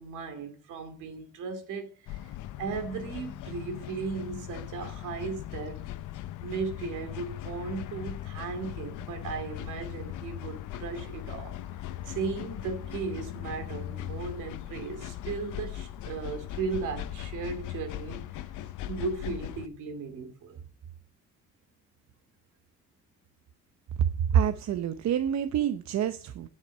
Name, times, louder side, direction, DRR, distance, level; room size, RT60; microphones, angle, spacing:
voice 1, 0.0-2.3 2.6-5.8 6.4-11.6 12.1-18.2 18.9-20.6, right 4 dB, 85° right, 2.6 m, -36 dB
sound 1, 2.1-19.7, left 13 dB, 85° left, 0.8 m, -39 dB
voice 2, 24.3-26.5, right 9 dB, 65° right, 0.8 m, -27 dB
9.7 x 7.8 x 5.4 m
cardioid pair, 90°, 30 cm